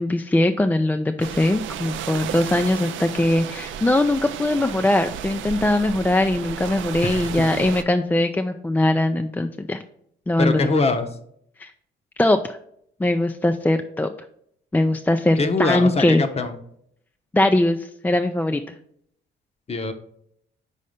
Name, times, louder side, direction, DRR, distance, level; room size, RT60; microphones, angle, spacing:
voice 1, 0.0-9.8 10.3-10.7 11.6-11.7 12.2-12.6 13.0-14.1 14.7-16.2 17.3-18.8, left 1 dB, 10° left, 7 dB, 0.3 m, -21 dB
sound 1, 1.2-7.8, right 9 dB, 75° right, 0.5 m, -33 dB
voice 2, 7.1-7.5 10.4-11.1 15.4-16.6 19.7-19.9, left 3 dB, 30° left, 8 dB, 0.8 m, -23 dB
5.5 x 4.1 x 5.0 m, 0.69 s
cardioid pair, 90°, 20 cm